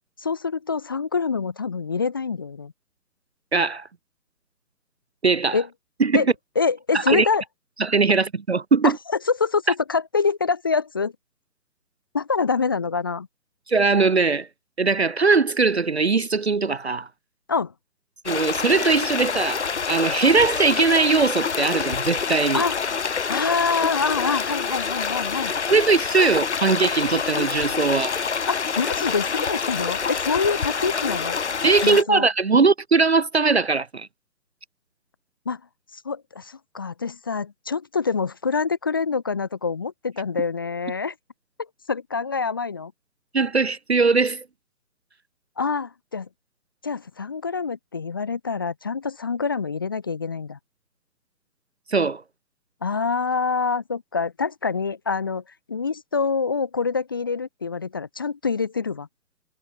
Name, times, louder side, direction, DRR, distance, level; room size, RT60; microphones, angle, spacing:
voice 1, 0.2-2.7 5.5-5.7 6.1-6.3 6.5-7.4 8.8-8.9 9.3-11.1 12.1-13.3 17.5-17.7 22.5-22.7 23.3-25.5 28.5-31.4 31.8-32.3 35.5-35.6 36.0-41.1 41.9-42.9 45.6-46.3 46.8-50.6 52.8-55.4 55.7-59.1, left 5 dB, 15° left, 1.0 m, -25 dB
voice 2, 3.5-3.9 5.2-5.6 6.0-6.2 6.9-7.3 7.8-9.0 13.7-14.5 14.8-17.1 18.2-22.6 25.7-28.2 31.6-34.1 43.3-44.4 51.9-52.2, right 4 dB, 40° right, 0.9 m, -20 dB
sound 1, 18.3-32.0, left 6 dB, 45° left, 2.5 m, -27 dB
figure-of-eight pair, 145°, 49 cm